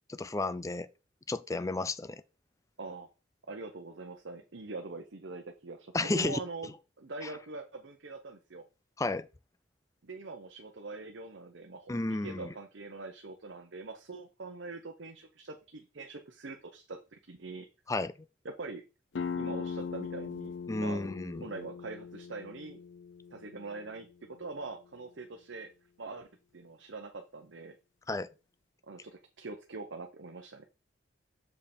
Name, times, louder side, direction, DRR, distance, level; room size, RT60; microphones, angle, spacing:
voice 1, 0.1-0.9 1.3-2.2 5.9-6.4 9.0-9.3 11.9-12.5 17.9-18.1 20.7-21.5 28.1-28.3, left 2 dB, 15° left, 0.4 m, -32 dB
voice 2, 2.8-3.1 3.5-6.7 7.0-8.6 10.0-17.7 18.4-18.8 19.4-21.0 21.4-22.8 23.3-24.1 24.4-25.7 26.0-26.3 26.5-27.8 28.8-30.7, right 3 dB, 70° right, 0.9 m, -43 dB
sound 1, 19.1-24.6, left 6 dB, 70° left, 0.5 m, -40 dB
6.9 x 5.4 x 4.3 m
head